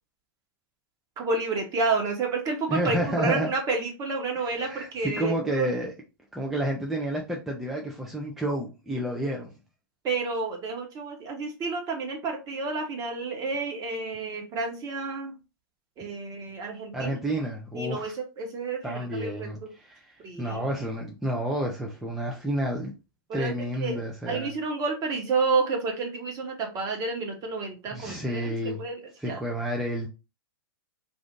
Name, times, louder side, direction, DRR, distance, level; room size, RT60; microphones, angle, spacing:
voice 1, 1.2-5.7 10.0-15.4 16.0-17.2 17.7-19.7 20.2-20.7 23.3-23.5 23.8-29.4, right 4 dB, 30° right, 1.1 m, -30 dB
voice 2, 2.7-3.5 4.5-5.9 6.3-9.5 16.9-18.1 18.8-20.0 20.4-22.9 23.3-24.5 27.9-28.8 29.2-30.1, right 1 dB, ahead, 0.5 m, -30 dB
2.6 x 2.4 x 3.6 m
hypercardioid pair, 110°, 12 cm